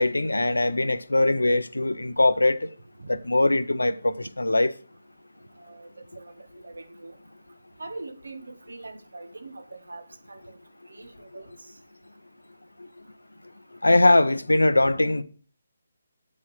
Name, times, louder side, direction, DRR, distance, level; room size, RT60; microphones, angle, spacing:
voice 1, 0.0-2.7 3.1-4.7 13.8-15.2, left 2 dB, 85° left, 0.6 m, -21 dB
voice 2, 5.6-7.2 7.8-10.6 10.9-11.5, right 2 dB, 75° right, 1.0 m, -42 dB
8.4 x 4.8 x 5.4 m
figure-of-eight pair, 150°, 0 cm